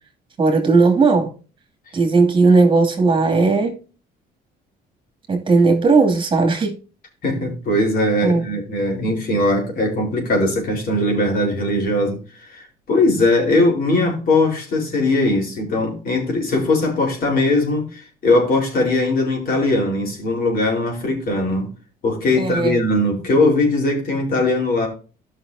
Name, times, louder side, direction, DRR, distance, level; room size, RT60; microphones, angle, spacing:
voice 1, 0.4-1.3 1.9-3.8 5.3-6.8 8.2-8.4 22.4-22.8, right 3 dB, 30° right, 2.4 m, -16 dB
voice 2, 7.2-21.7 22.0-24.9, left 2 dB, 60° left, 4.2 m, -20 dB
14.0 x 5.9 x 2.7 m
cardioid pair, 110°, 17 cm